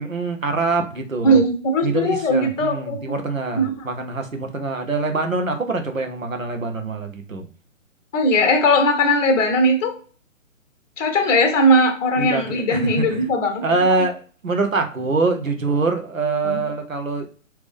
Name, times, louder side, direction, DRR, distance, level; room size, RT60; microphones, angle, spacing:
voice 1, 0.0-1.4 1.8-7.5 12.2-12.4 12.7-13.3 13.6-17.3, right 3 dB, 90° right, 4 dB, 1.0 m, -24 dB
voice 2, 1.2-3.2 3.5-3.7 8.1-9.9 11.0-13.6 16.4-16.6, equal, 30° left, 2 dB, 1.1 m, -19 dB
3.6 x 3.0 x 3.5 m, 0.39 s
figure-of-eight pair, 135°, 39 cm